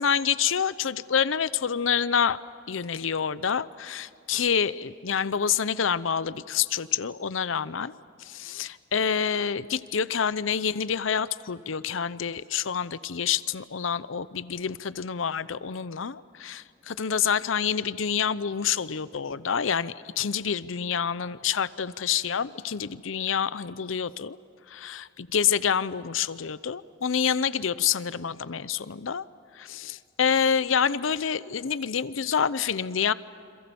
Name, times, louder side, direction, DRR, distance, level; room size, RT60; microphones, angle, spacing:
voice 1, 0.0-2.4 2.7-7.9 8.2-24.4 24.7-29.2 29.5-33.1, left 7 dB, 85° left, 16 dB, 0.7 m, -27 dB
28.0 x 27.0 x 7.0 m, 2.6 s
head